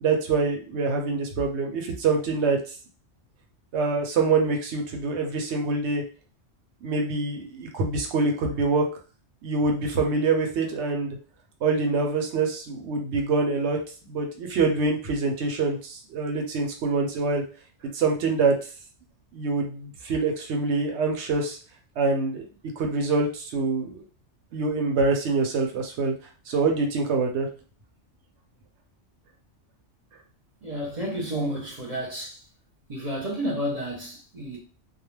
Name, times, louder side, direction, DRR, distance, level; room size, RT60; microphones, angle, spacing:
voice 1, 0.0-2.6 3.7-6.0 6.8-8.9 9.4-11.2 11.6-13.8 14.1-17.4 17.9-18.6 19.3-21.6 22.0-22.5 22.8-24.0 24.5-26.1 26.5-27.5 31.3-31.5, right 4 dB, 70° right, 0.9 m, -25 dB
voice 2, 30.6-32.4 32.9-34.6, equal, 40° right, 0.7 m, -31 dB
2.2 x 2.1 x 3.1 m
omnidirectional pair, 1.2 m